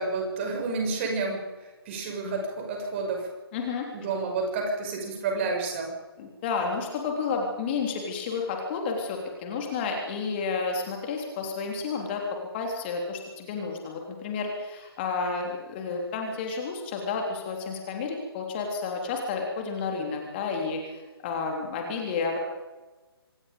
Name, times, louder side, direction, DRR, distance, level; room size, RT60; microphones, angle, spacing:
voice 1, 0.0-1.4 1.8-3.3 3.9-5.9, right 3 dB, 30° right, 2 dB, 6.2 m, -30 dB
voice 2, 3.5-3.9 6.2-22.4, left 4 dB, 25° left, 1 dB, 3.6 m, -31 dB
26.0 x 21.0 x 5.3 m, 1.2 s
figure-of-eight pair, 140°, 13 cm